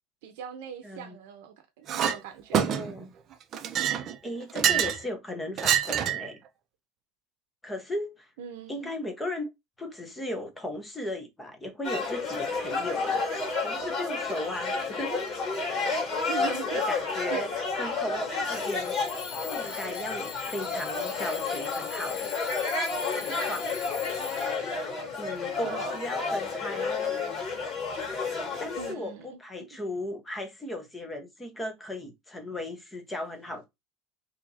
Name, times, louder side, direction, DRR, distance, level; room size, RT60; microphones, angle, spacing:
voice 1, 0.2-2.7 8.4-8.9 16.2-16.9 17.3-17.4 25.6-26.0 28.8-29.7, right 9 dB, 85° right, 0.6 m, -40 dB
voice 2, 0.8-1.2 2.5-3.1 4.2-6.4 7.6-8.3 8.7-9.5 9.8-13.2 13.6-15.3 16.4-16.5 16.8-17.5 17.8-18.9 19.4-22.4 23.2-23.7 25.2-27.1 28.6-33.7, left 1 dB, 10° left, 0.8 m, -36 dB
Chink clink, 1.9-2.2 2.5-3.0 3.5-5.0 5.6-6.3, right 9 dB, 35° right, 0.4 m, -26 dB
sound 1, 11.8-28.9, left 4 dB, 30° left, 1.8 m, -31 dB
Alarm / Clock, 13.4-13.5 14.1-14.5 15.1-15.5 16.4-16.5 18.4-24.8, left 10 dB, 65° left, 0.4 m, -42 dB
2.8 x 2.5 x 3.9 m
cardioid pair, 160°, 0 cm